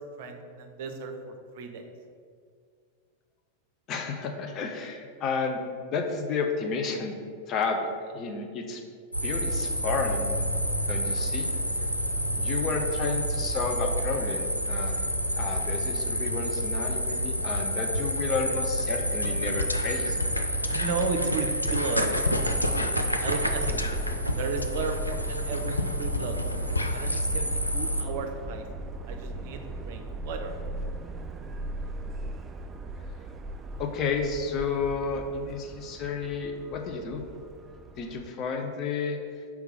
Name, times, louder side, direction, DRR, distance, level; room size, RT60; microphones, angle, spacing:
voice 1, 0.2-1.9 20.7-22.2 23.2-23.9 24.4-26.4 26.9-28.6 29.1-30.5, right 4 dB, 50° right, 5 dB, 0.6 m, -34 dB
voice 2, 3.9-5.6 5.9-7.1 7.5-8.8 9.2-10.5 10.9-11.5 12.4-15.1 15.4-20.2 33.8-37.2 38.0-39.2, left 4 dB, 35° left, 3 dB, 0.6 m, -31 dB
sound 1, 9.1-28.0, equal, 90° right, 0.4 m, -29 dB
sound 2, 19.2-19.3 19.6-27.2, left 3 dB, 85° left, 0.3 m, -33 dB
Subway metro underground, 22.1-38.3, right 2 dB, 20° right, 0.3 m, -39 dB
4.6 x 3.7 x 5.5 m, 2.1 s
figure-of-eight pair, 90°, 0 cm